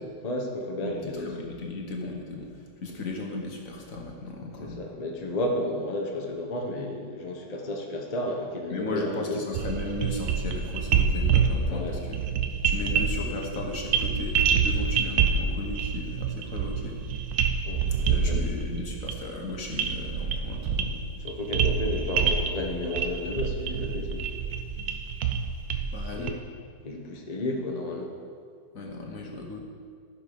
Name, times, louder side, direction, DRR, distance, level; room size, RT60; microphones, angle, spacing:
voice 1, 0.2-1.5 4.6-9.4 11.7-12.0 12.9-13.0 17.6-18.4 21.2-24.3 26.1-26.4 26.8-28.1, left 1 dB, 25° left, 0 dB, 0.9 m, -32 dB
voice 2, 0.8-4.8 8.7-12.2 12.6-17.0 18.0-21.0 25.9-26.3 28.7-29.6, left 2 dB, 50° left, 0 dB, 1.5 m, -36 dB
sound 1, 9.5-26.3, right 6 dB, 65° right, 1.1 m, -27 dB
14.5 x 6.3 x 5.1 m, 2.1 s
omnidirectional pair, 1.9 m